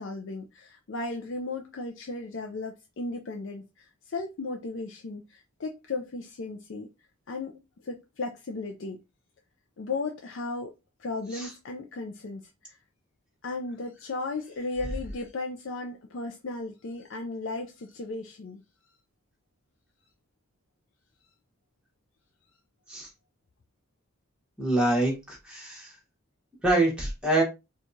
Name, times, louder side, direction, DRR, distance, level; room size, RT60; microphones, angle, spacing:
voice 1, 0.0-6.9 7.3-9.0 9.8-10.7 11.0-12.8 13.4-18.6, left 3 dB, 60° left, 0.4 m, -35 dB
voice 2, 24.6-25.9 26.6-27.4, right 2 dB, 5° right, 1.1 m, -25 dB
4.5 x 2.3 x 2.6 m
head